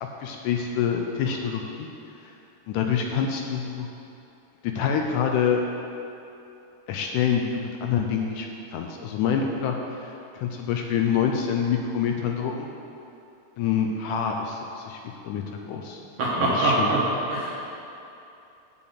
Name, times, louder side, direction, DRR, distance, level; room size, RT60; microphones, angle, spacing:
voice 1, 0.2-1.9 2.2-2.3 2.7-3.9 4.6-5.6 6.9-8.5 8.7-9.8 10.0-12.7 13.6-15.0 15.2-16.0 16.4-16.9, left 7 dB, 80° left, 2 dB, 2.0 m, -26 dB
voice 2, 16.2-17.0 17.3-17.5, right 2 dB, 55° right, -6 dB, 1.8 m, -23 dB
7.7 x 5.9 x 7.7 m, 2.8 s
omnidirectional pair, 4.0 m